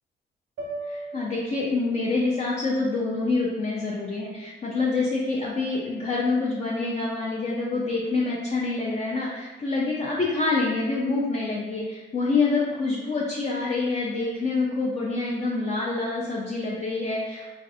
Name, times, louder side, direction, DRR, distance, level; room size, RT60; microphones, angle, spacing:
sound 1, 0.6-4.8, right 2 dB, 85° right, 0.6 m, -42 dB
voice 1, 0.8-17.5, left 3 dB, 35° left, -4 dB, 0.5 m, -26 dB
3.1 x 2.3 x 2.6 m, 1.2 s
cardioid pair, 90°, 20 cm